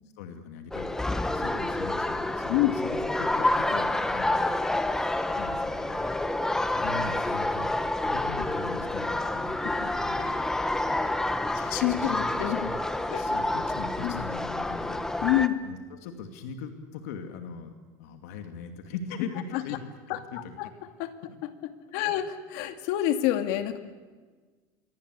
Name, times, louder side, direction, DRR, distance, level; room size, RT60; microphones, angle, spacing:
voice 1, 0.1-6.1 6.7-10.5 11.0-11.1 11.5-12.8 13.1-15.0 15.6-19.8 20.1-20.6 22.0-22.1, left 5 dB, 90° left, 5 dB, 2.6 m, -40 dB
sound 1, 0.7-15.5, left 1 dB, 5° left, 1.1 m, -28 dB
voice 2, 11.5-12.6 13.1-13.3 14.0-14.2 15.2-15.6 19.5-19.8 20.1-20.7 21.0-21.1 21.4-21.5 21.9-23.8, left 13 dB, 70° left, 7 dB, 2.3 m, -27 dB
27.0 x 23.5 x 8.3 m, 1.4 s
cardioid pair, 145°, 8 cm